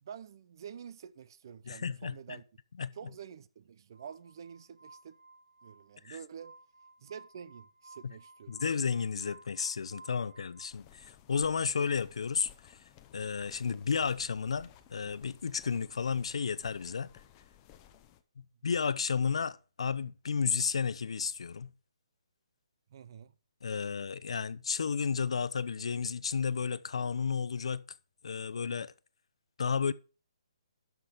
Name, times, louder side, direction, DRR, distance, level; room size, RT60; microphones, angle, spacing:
voice 1, 0.0-2.4 2.9-5.2 5.6-6.6 7.0-8.6 22.9-23.3, right 8 dB, 40° right, 0.6 m, -48 dB
voice 2, 1.7-2.4 2.8-2.9 6.0-6.2 8.5-12.8 13.1-17.1 18.6-21.7 23.6-27.8 28.2-28.9 29.6-29.9, left 6 dB, 65° left, 0.7 m, -32 dB
Glass, 3.9-10.7, right 2 dB, 85° right, 1.3 m, -56 dB
sound 1, 10.7-18.2, left 11 dB, 20° left, 0.7 m, -58 dB
12.0 x 6.1 x 4.9 m
hypercardioid pair, 165°, 3 cm